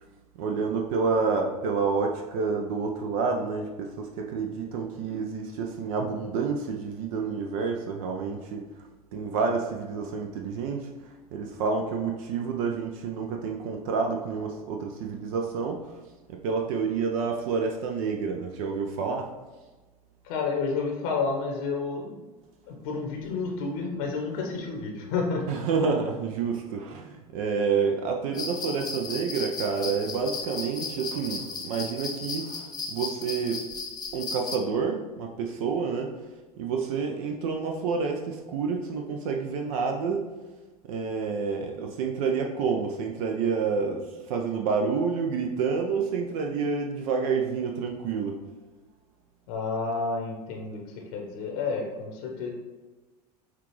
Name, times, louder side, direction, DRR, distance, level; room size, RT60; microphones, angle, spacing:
voice 1, 0.4-16.0 16.3-19.3 25.5-33.6 34.1-36.3 36.6-40.2 40.8-48.4, right 5 dB, 65° right, 3 dB, 0.5 m, -29 dB
voice 2, 20.2-22.2 22.7-25.4 49.5-50.8 51.1-52.5, left 4 dB, 60° left, 1 dB, 0.8 m, -30 dB
sound 1, 28.3-34.6, left 4 dB, 20° left, 0.6 m, -35 dB
5.7 x 2.4 x 3.1 m, 1.2 s
hypercardioid pair, 85°, 20 cm